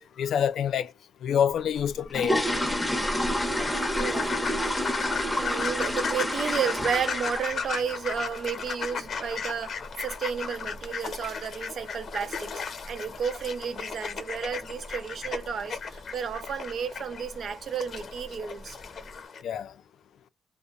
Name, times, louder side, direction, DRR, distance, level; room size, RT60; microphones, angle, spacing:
voice 1, 0.2-0.9 1.2-2.4 19.4-19.7, left 8 dB, 90° left, 0.3 m, -26 dB
sound 1, 1.8-7.7 8.0-8.2 8.6-8.7 9.0-9.2 9.6-9.8 10.1-10.2 10.7-10.8 11.1-11.3 11.8-12.1 12.4-12.5 12.9-13.1 13.4-13.5 13.9-14.0 14.6-14.9 15.3-15.6 15.9-16.0 16.5-16.6 17.3-17.5 17.9-18.4 18.8-18.9, equal, 10° left, 0.6 m, -29 dB
sound 2, 3.4-19.4, left 6 dB, 60° left, 0.7 m, -36 dB
voice 2, 4.0-4.7 5.3-9.8 10.0-18.8, right 7 dB, 65° right, 0.6 m, -32 dB
2.7 x 2.0 x 2.4 m
wide cardioid pair, 135°, 0 cm